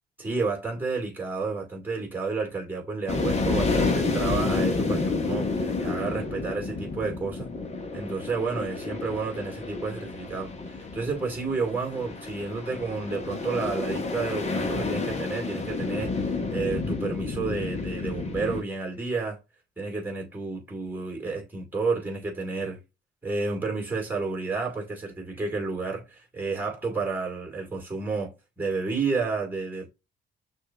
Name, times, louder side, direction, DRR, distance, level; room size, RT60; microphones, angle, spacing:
voice 1, 0.2-7.5 7.9-19.4 19.8-22.8 23.2-29.9, right 4 dB, 10° right, 2.0 m, -31 dB
sound 1, 3.1-18.6, left 3 dB, 35° left, 1.2 m, -30 dB
6.2 x 2.8 x 2.4 m
cardioid pair, 90°, 20 cm